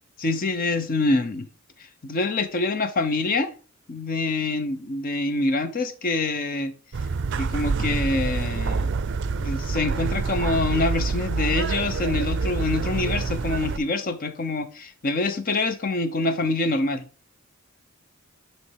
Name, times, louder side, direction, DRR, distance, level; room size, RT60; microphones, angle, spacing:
voice 1, 0.2-1.5 2.0-3.5 3.9-6.7 7.3-8.9 9.4-17.0, left 2 dB, 40° left, 0.7 m, -25 dB
sound 1, 6.9-13.8, right 4 dB, 55° right, 0.4 m, -26 dB
9.5 x 3.2 x 4.6 m
head